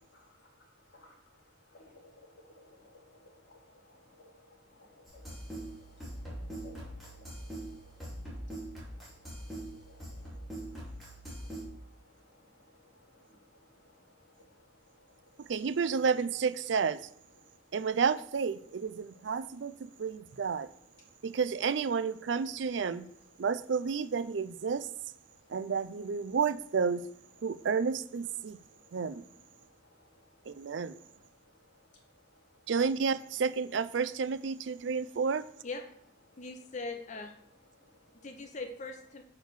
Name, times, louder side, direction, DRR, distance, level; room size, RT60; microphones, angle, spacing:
voice 1, 0.1-15.5 17.4-17.7 19.1-19.2 19.5-20.0 21.0-21.3 25.3-25.7 28.4-32.7 36.3-36.5 37.7-38.3, left 1 dB, 85° left, -1 dB, 2.7 m, -61 dB
sound 1, 5.0-11.6, right 1 dB, ahead, 2.8 m, -43 dB
voice 2, 15.5-17.1 17.7-20.7 21.2-23.1 23.4-24.9 25.5-27.1 27.4-28.6 28.9-29.2 30.5-31.0 32.7-35.4, right 5 dB, 75° right, 15 dB, 0.4 m, -31 dB
voice 3, 36.4-37.4 38.2-39.2, left 3 dB, 40° left, 5 dB, 0.7 m, -40 dB
6.4 x 4.8 x 6.6 m, 0.63 s
head